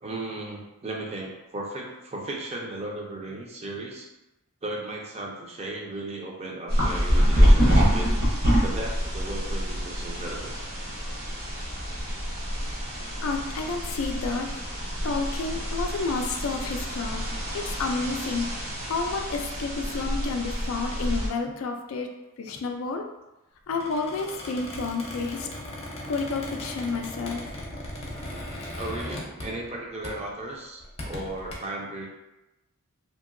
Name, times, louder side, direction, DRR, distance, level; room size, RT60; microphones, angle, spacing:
voice 1, 0.0-4.1 4.6-8.2 8.6-10.6 28.7-32.1, right 2 dB, 30° right, -1 dB, 0.5 m, -36 dB
sound 1, 6.7-21.3, equal, 50° right, 1.0 m, -26 dB
voice 2, 13.2-14.6 15.0-18.4 18.8-23.0 23.7-25.5 26.1-27.6, left 4 dB, 70° left, 3 dB, 0.4 m, -30 dB
Squeak, 23.7-29.8 30.0-30.3 30.8-31.5, left 1 dB, 30° left, 0.6 m, -38 dB
2.9 x 2.7 x 2.5 m, 0.98 s
head